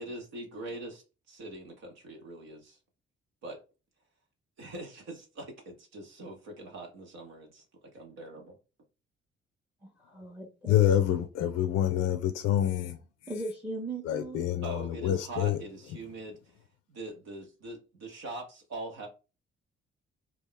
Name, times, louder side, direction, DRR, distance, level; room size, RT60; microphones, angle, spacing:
voice 1, 0.0-2.8 3.4-3.6 4.6-7.5 8.0-8.6 14.6-16.6 16.9-19.1, right 2 dB, 55° right, 0.9 m, -42 dB
voice 2, 9.8-10.8 13.3-14.4, right 2 dB, 5° right, 0.8 m, -38 dB
voice 3, 10.6-13.0 14.0-15.6, left 11 dB, 55° left, 0.5 m, -27 dB
3.0 x 2.3 x 3.7 m
figure-of-eight pair, 40°, 31 cm